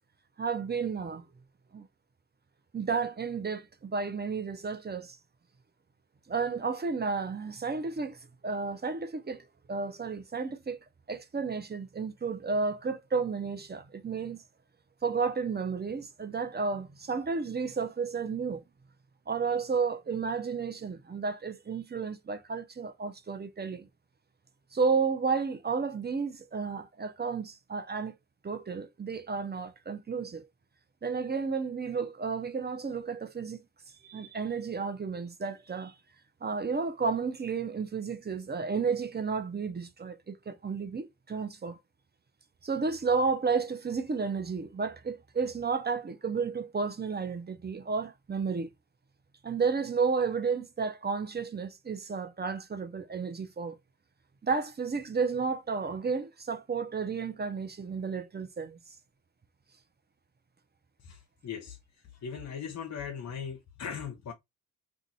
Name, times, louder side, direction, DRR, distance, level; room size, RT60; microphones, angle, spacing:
voice 1, 0.4-1.2 1.7-1.9 2.7-5.2 6.3-10.8 11.1-14.4 15.0-18.6 19.3-23.9 24.7-28.1 28.4-30.5 31.0-33.6 34.0-35.9 36.4-41.8 42.6-48.7 49.4-53.8 54.4-58.8, right 5 dB, 25° right, 0.8 m, -32 dB
voice 2, 61.4-61.8 62.2-64.3, left 7 dB, 45° left, 0.8 m, -38 dB
2.6 x 2.5 x 4.1 m
supercardioid pair, 60°, 40 cm